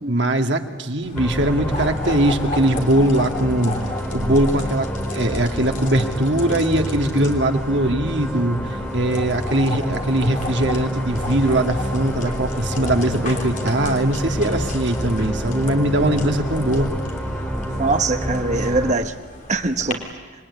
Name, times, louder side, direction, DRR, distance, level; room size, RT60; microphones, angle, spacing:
voice 1, 0.1-3.7 4.1-4.9 5.1-8.6 8.9-16.9, right 1 dB, 65° right, 4 dB, 2.1 m, -21 dB
sound 1, 1.0-19.9, left 2 dB, 40° left, 3.4 m, -34 dB
sound 2, 1.1-18.9, equal, 10° left, 2.9 m, -28 dB
voice 2, 17.8-19.1 19.5-20.0, right 3 dB, 40° right, 8 dB, 1.3 m, -22 dB
27.5 x 22.0 x 9.7 m, 1.5 s
head